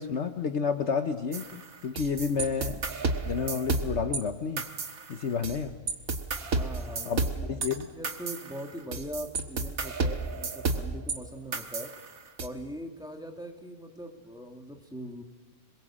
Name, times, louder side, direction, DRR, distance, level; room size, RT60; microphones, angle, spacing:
voice 1, 0.0-2.8 3.3-4.7 5.1-5.7 7.0-7.2 7.5-7.9, left 6 dB, 55° left, 7 dB, 1.2 m, -30 dB
sound 1, 1.3-4.2 4.6-5.6 5.9-11.2 11.5-12.5, right 3 dB, 65° right, 2.0 m, -32 dB
voice 2, 6.5-7.5 7.9-12.0 12.4-15.2, equal, 5° right, 3 dB, 2.2 m, -41 dB
26.5 x 22.0 x 7.5 m, 1.3 s
omnidirectional pair, 1.6 m